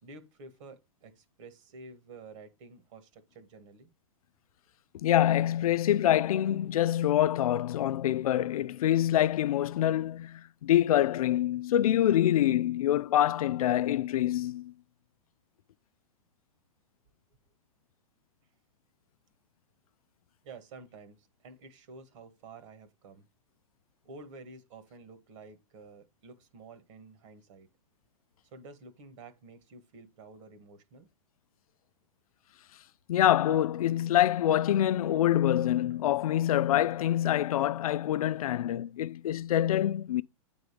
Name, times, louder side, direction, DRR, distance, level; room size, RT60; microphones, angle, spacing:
voice 1, 0.0-3.9 20.4-23.3 24.0-27.7 28.4-31.1, right 3 dB, 55° right, 1.8 m, -50 dB
voice 2, 4.9-14.7 33.1-40.2, left 12 dB, 75° left, 0.5 m, -26 dB
9.0 x 4.0 x 5.0 m
hypercardioid pair, 130°, 19 cm